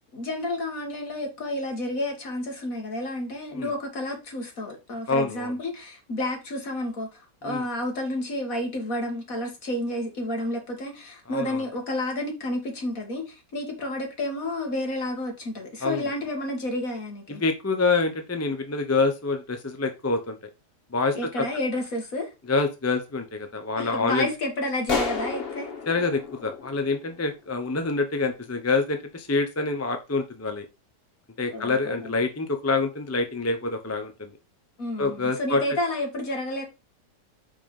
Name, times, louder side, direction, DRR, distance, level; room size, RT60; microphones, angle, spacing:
voice 1, 0.1-17.4 21.1-22.3 23.7-25.7 31.5-32.1 34.8-36.6, left 1 dB, 55° left, 2.3 m, -30 dB
voice 2, 5.1-5.6 7.4-7.7 11.3-11.6 15.8-16.1 17.3-20.4 20.9-21.5 22.5-24.3 25.9-30.7 31.4-34.3 35.0-35.6, left 3 dB, 15° left, 0.5 m, -26 dB
sound 1, 24.9-27.5, left 5 dB, 40° left, 1.2 m, -31 dB
5.5 x 5.2 x 5.4 m
omnidirectional pair, 1.8 m